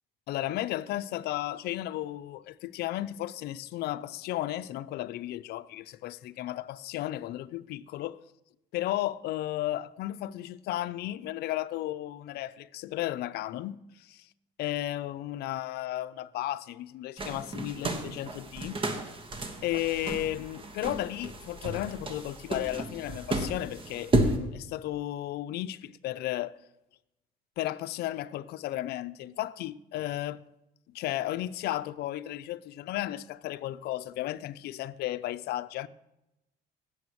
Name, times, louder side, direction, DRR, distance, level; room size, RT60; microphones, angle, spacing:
voice 1, 0.3-8.2 8.7-14.3 14.6-18.8 19.6-26.6 27.6-30.4 30.9-35.9, left 14 dB, 75° left, 0.5 m, -34 dB
sound 1, 17.2-24.4, right 2 dB, 30° right, 1.3 m, -32 dB
16.5 x 7.1 x 3.1 m
cardioid pair, 110°, 17 cm